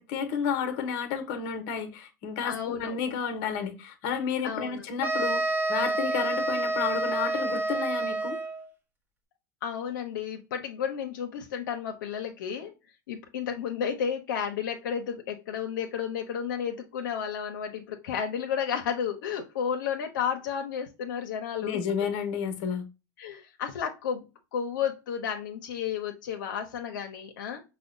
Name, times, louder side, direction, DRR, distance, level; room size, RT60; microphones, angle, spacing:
voice 1, 0.0-8.4 21.6-22.9, left 6 dB, 55° left, 0.8 m, -31 dB
voice 2, 2.4-3.0 4.4-4.8 9.6-12.7 13.1-21.8 23.2-24.3 24.5-27.6, left 8 dB, 85° left, 0.6 m, -32 dB
sound 1, 5.0-8.7, right 2 dB, 20° right, 0.8 m, -28 dB
4.9 x 2.1 x 2.4 m
supercardioid pair, 115°, 10 cm